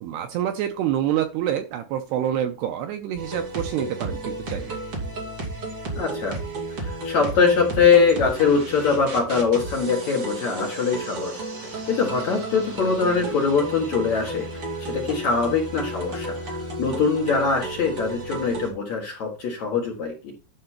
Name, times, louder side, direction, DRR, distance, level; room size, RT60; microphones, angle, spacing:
voice 1, 0.0-4.8, right 11 dB, 85° right, 7 dB, 2.4 m, -27 dB
sound 1, 3.1-18.7, right 1 dB, 35° right, 3.1 m, -33 dB
voice 2, 6.0-6.4 6.8-11.3 11.9-14.5 14.8-20.3, left 5 dB, 60° left, 0 dB, 2.0 m, -22 dB
12.0 x 5.8 x 4.4 m, 0.34 s
omnidirectional pair, 5.3 m